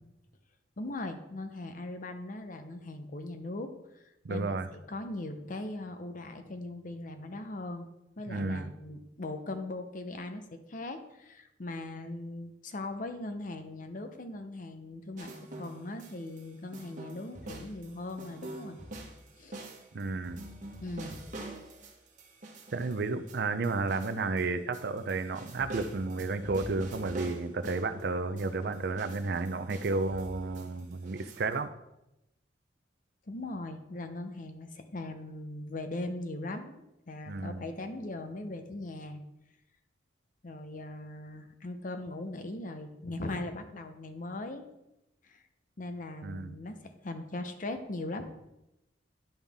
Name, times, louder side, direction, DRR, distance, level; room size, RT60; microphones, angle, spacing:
voice 1, 0.8-4.6 4.9-7.9 8.2-15.3 15.6-18.8 19.4-19.6 20.8-21.2 33.3-36.8 37.1-39.2 40.4-44.7 45.2-45.4 45.8-48.3, left 2 dB, 50° left, 7 dB, 0.8 m, -39 dB
voice 2, 4.2-4.7 8.3-8.7 19.9-20.4 22.7-31.7 37.3-37.6 46.2-46.5, right 3 dB, 60° right, 11 dB, 0.5 m, -32 dB
sound 1, 15.2-16.4 16.7-24.5 24.7-28.0 28.4-31.5, right 1 dB, 45° right, 1.3 m, -45 dB
10.5 x 5.6 x 3.5 m, 0.90 s
head